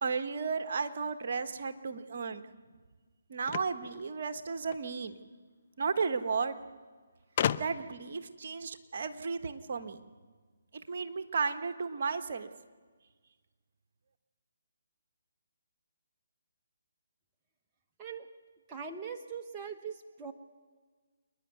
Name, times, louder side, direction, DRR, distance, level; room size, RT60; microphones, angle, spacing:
voice 1, 0.0-2.4 3.3-5.2 5.8-6.6 7.6-10.0 10.9-12.5, right 5 dB, 55° right, 9 dB, 1.4 m, -34 dB
sound 1, 3.4-4.9 6.0-6.1 6.3-6.4 7.4-8.0, left 9 dB, 40° left, 0.6 m, -33 dB
voice 2, 18.0-18.3 18.7-20.3, right 6 dB, 20° right, 3 dB, 1.0 m, -41 dB
28.0 x 10.5 x 9.3 m, 1.5 s
figure-of-eight pair, 145°, 0 cm